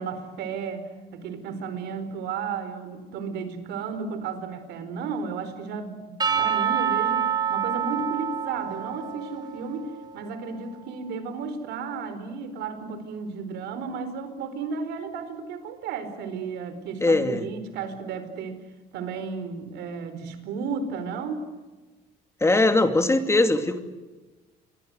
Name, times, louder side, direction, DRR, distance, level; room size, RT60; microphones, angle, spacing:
voice 1, 0.0-18.6 18.9-21.4, right 5 dB, 85° right, 10 dB, 4.6 m, -33 dB
Percussion / Church bell, 6.2-10.5, right 8 dB, 25° right, 3.9 m, -27 dB
voice 2, 17.0-17.5 22.4-23.8, left 2 dB, 15° left, 8 dB, 2.5 m, -21 dB
28.0 x 23.5 x 8.1 m, 1.2 s
cardioid pair, 110°, 17 cm